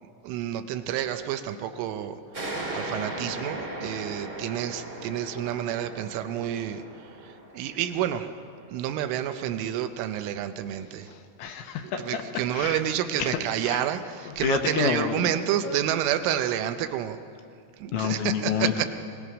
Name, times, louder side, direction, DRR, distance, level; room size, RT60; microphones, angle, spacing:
voice 1, 0.0-8.3 8.7-11.1 12.0-17.2 17.8-18.9, right 11 dB, 80° right, 9 dB, 3.0 m, -29 dB
sound 1, 2.3-9.5, right 2 dB, 40° right, 1.5 m, -38 dB
voice 2, 11.1-12.8 13.2-13.4 13.6-13.8 14.4-15.2 15.6-15.8 17.9-18.9, left 8 dB, 80° left, 6 dB, 3.0 m, -29 dB
23.0 x 18.5 x 6.2 m, 2.4 s
omnidirectional pair, 5.9 m